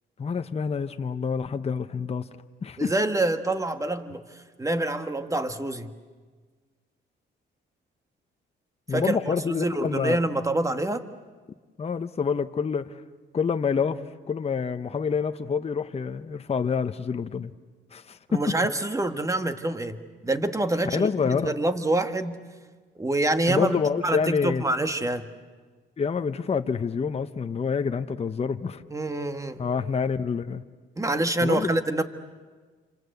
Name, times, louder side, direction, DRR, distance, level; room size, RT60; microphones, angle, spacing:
voice 1, 0.2-2.3 2.6-2.9 8.9-10.2 11.8-12.9 13.3-17.5 17.9-18.4 20.9-21.5 23.5-24.6 26.0-28.8 29.6-30.6 31.4-31.7, left 6 dB, 30° left, 8 dB, 0.9 m, -27 dB
voice 2, 2.8-5.9 8.9-11.0 18.3-20.0 20.2-22.4 23.0-25.3 28.9-29.6 31.0-32.0, right 2 dB, 15° right, 9 dB, 1.6 m, -26 dB
28.0 x 26.0 x 8.0 m, 1.4 s
cardioid pair, 90°, 20 cm